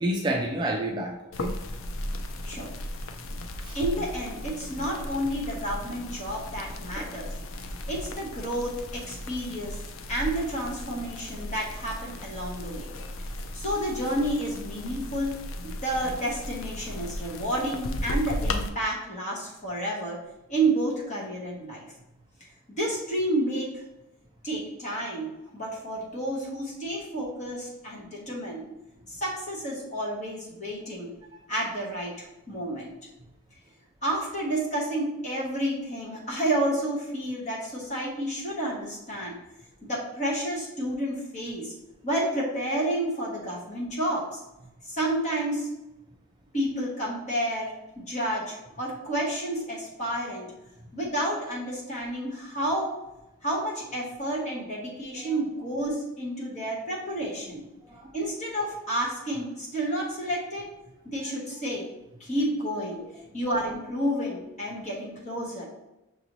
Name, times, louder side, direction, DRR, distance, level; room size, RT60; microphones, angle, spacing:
voice 1, 0.0-1.5 3.6-3.8 7.0-7.1 55.2-55.3 57.9-58.1, right 1 dB, 20° right, -1 dB, 0.3 m, -29 dB
sound 1, 1.3-18.7, left 1 dB, 65° left, 0.4 m, -36 dB
voice 2, 3.7-7.3 7.9-9.8 10.1-12.9 13.5-15.3 15.6-20.2 20.5-21.8 22.7-23.7 24.4-28.6 29.1-31.1 31.5-32.9 34.0-39.4 39.8-41.7 42.0-44.4 44.9-45.7 46.5-50.5 50.9-52.9 53.4-57.6 58.1-60.7 61.0-61.9 62.2-63.0 63.3-65.6, right 1 dB, 30° left, -4 dB, 1.2 m, -30 dB
5.9 x 2.7 x 3.0 m, 0.94 s
head